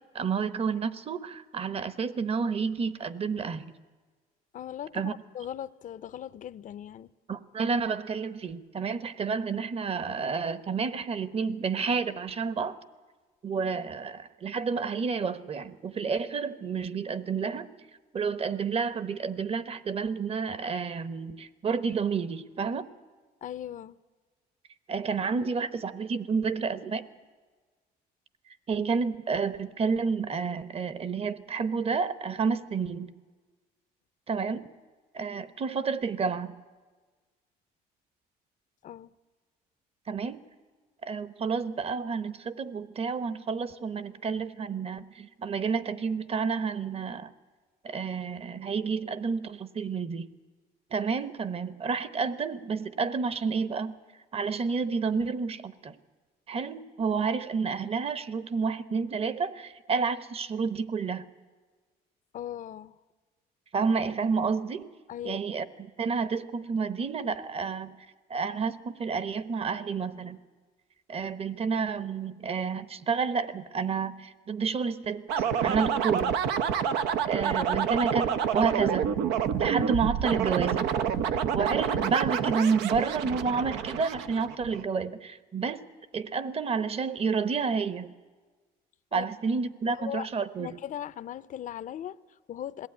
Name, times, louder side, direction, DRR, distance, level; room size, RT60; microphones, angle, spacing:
voice 1, 0.1-3.7 4.9-5.1 7.3-12.8 13.4-17.7 18.1-22.8 24.9-27.1 28.7-33.1 34.3-34.7 35.1-36.5 40.1-40.4 41.0-47.3 47.8-50.3 50.9-53.9 54.3-55.9 56.5-61.3 63.7-64.9 65.2-68.0 68.3-70.4 71.1-76.4 77.2-79.2 79.6-80.8 81.3-85.8 86.1-88.1 89.1-90.7, right 5 dB, 35° right, 1.0 m, -30 dB
voice 2, 4.5-7.1 23.4-24.0 38.8-39.1 62.3-63.0 65.1-65.4 89.1-89.2 89.9-90.3 90.6-92.9, left 10 dB, 50° left, 0.6 m, -39 dB
sound 1, 75.3-84.8, right 8 dB, 90° right, 0.8 m, -28 dB
21.0 x 15.5 x 9.5 m
cardioid pair, 110°, 17 cm